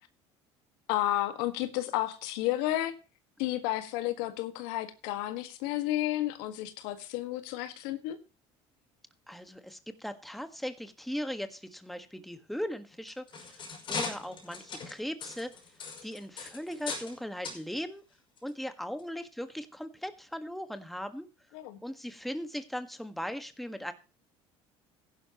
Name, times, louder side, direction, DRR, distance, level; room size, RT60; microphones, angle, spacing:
voice 1, 0.9-2.9 3.4-8.2 21.5-21.8, left 14 dB, 85° left, 1.7 m, -32 dB
voice 2, 9.3-15.5 16.0-18.0 18.4-21.3 21.8-23.9, equal, ahead, 1.6 m, -38 dB
sound 1, 12.9-17.2 17.4-17.6 18.4-18.5 19.0-19.1, left 4 dB, 40° left, 5.4 m, -39 dB
15.5 x 11.0 x 3.0 m
supercardioid pair, 110°, 12 cm